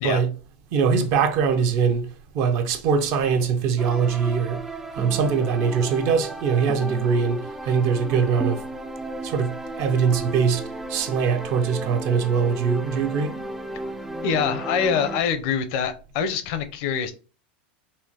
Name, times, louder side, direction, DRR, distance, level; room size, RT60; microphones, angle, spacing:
voice 1, 0.0-0.3 0.7-2.1 2.3-4.6 4.9-8.6 9.2-10.6 10.9-13.3, right 6 dB, 50° right, 0.6 m, -22 dB
sound 1, 3.8-15.2, right 2 dB, 5° right, 0.3 m, -34 dB
voice 2, 14.2-17.1, left 7 dB, 60° left, 0.6 m, -25 dB
4.2 x 2.5 x 2.8 m
supercardioid pair, 125°, 6 cm